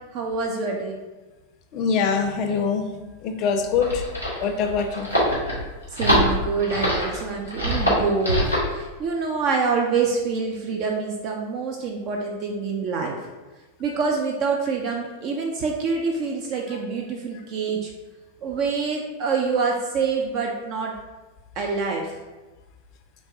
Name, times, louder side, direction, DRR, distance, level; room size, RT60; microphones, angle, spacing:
voice 1, 0.1-1.0 5.9-8.4 8.7-13.1 13.8-17.9 18.4-20.9 21.6-22.2, right 4 dB, 40° right, 1 dB, 0.4 m, -26 dB
voice 2, 1.7-2.8 3.2-4.0 4.4-5.1, left 6 dB, 40° left, 6 dB, 0.4 m, -23 dB
sound 1, 3.5-8.7, equal, 90° right, 0.9 m, -23 dB
3.3 x 3.1 x 2.6 m, 1.2 s
figure-of-eight pair, 90°, 0 cm